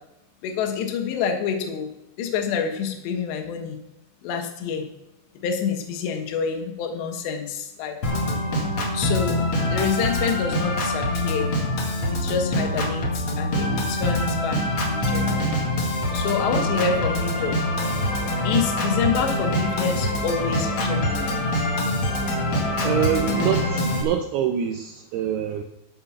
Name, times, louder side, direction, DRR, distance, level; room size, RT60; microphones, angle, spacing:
voice 1, 0.4-1.9 2.2-3.8 4.2-4.9 5.4-8.0 8.9-9.4 9.7-11.5 12.1-15.5 16.1-17.6 18.4-21.5, left 6 dB, 70° left, 4 dB, 3.4 m, -27 dB
Organ, 8.0-24.0, left 1 dB, 50° left, 1.6 m, -24 dB
voice 2, 22.8-25.6, right 9 dB, 90° right, 6 dB, 2.3 m, -25 dB
13.5 x 6.7 x 6.0 m, 0.89 s
omnidirectional pair, 5.4 m